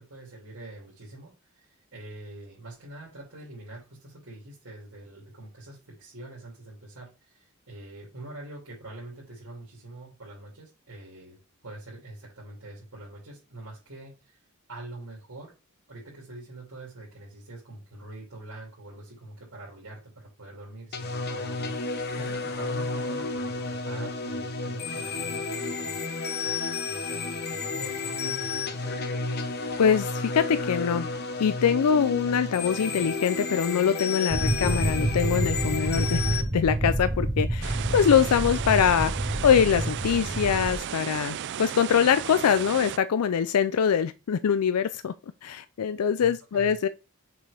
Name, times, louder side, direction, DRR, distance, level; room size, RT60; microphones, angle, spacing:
voice 1, 0.0-14.4 14.7-15.5 15.9-26.1 26.4-28.7 46.2-46.8, right 2 dB, 70° right, 2.8 m, -45 dB
sound 1, 20.9-36.4, left 3 dB, 45° left, 0.9 m, -31 dB
voice 2, 29.8-31.1 31.4-36.2 36.5-39.1 39.4-45.1 45.4-46.9, left 7 dB, 85° left, 0.4 m, -23 dB
sound 2, 34.3-40.8, right 1 dB, 15° right, 0.9 m, -28 dB
sound 3, 37.6-43.0, right 9 dB, 50° right, 0.3 m, -35 dB
6.3 x 5.4 x 3.4 m
head